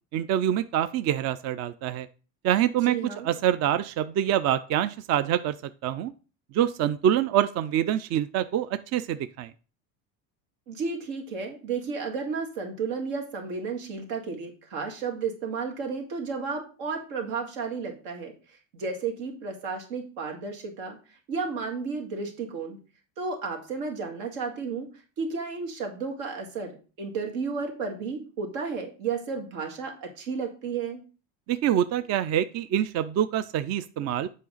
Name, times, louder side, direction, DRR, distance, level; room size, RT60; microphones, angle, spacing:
voice 1, 0.1-2.1 2.4-3.0 3.2-5.5 5.8-6.1 6.5-9.5 31.5-34.3, right 10 dB, 45° right, 13 dB, 0.4 m, -25 dB
voice 2, 2.9-3.3 10.7-18.3 18.7-21.0 21.3-22.8 23.2-24.9 25.2-31.0, right 5 dB, 80° right, 2 dB, 2.0 m, -32 dB
7.5 x 5.0 x 3.9 m, 0.36 s
supercardioid pair, 115°, 40 cm